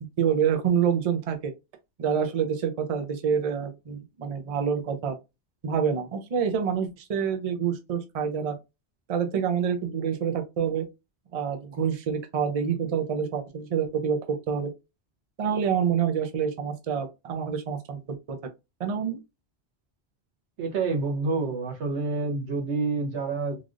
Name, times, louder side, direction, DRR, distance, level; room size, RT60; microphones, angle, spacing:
voice 1, 0.2-1.5 2.0-5.2 5.6-8.5 9.1-10.8 11.3-14.7 15.4-18.4 18.8-19.2, right 7 dB, 45° right, 0.5 m, -27 dB
voice 2, 20.6-23.6, right 3 dB, 90° right, 1.2 m, -28 dB
3.3 x 2.4 x 2.5 m
omnidirectional pair, 1.1 m